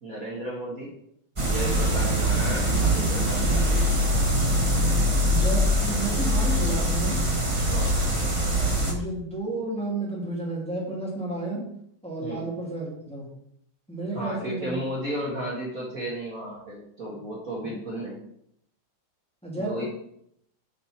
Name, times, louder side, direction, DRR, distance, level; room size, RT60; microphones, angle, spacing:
voice 1, 0.0-0.9 1.4-3.8 7.6-8.0 12.2-12.5 14.1-18.2 19.6-19.9, right 1 dB, 45° right, -4 dB, 1.9 m, -34 dB
sound 1, 1.4-8.9, equal, 25° right, 0.8 m, -23 dB
voice 2, 5.3-7.2 8.8-11.6 12.0-13.3 13.9-14.8 17.6-17.7 19.4-19.9, right 2 dB, 5° left, -5 dB, 2.5 m, -32 dB
7.1 x 6.7 x 4.5 m, 0.73 s
omnidirectional pair, 2.3 m